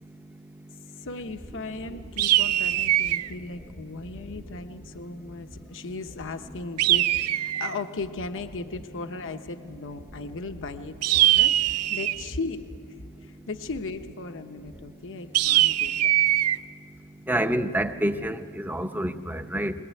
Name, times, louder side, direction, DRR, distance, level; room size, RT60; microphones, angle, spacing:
voice 1, 0.9-12.6 13.2-16.1, left 3 dB, 60° left, 7 dB, 1.0 m, -37 dB
sound 1, 2.2-3.3 6.8-7.8 11.0-12.3 15.3-16.6, right 14 dB, 85° right, 0.6 m, -22 dB
voice 2, 17.3-19.7, right 1 dB, 10° right, 8 dB, 0.9 m, -27 dB
21.5 x 21.5 x 9.4 m, 2.3 s
head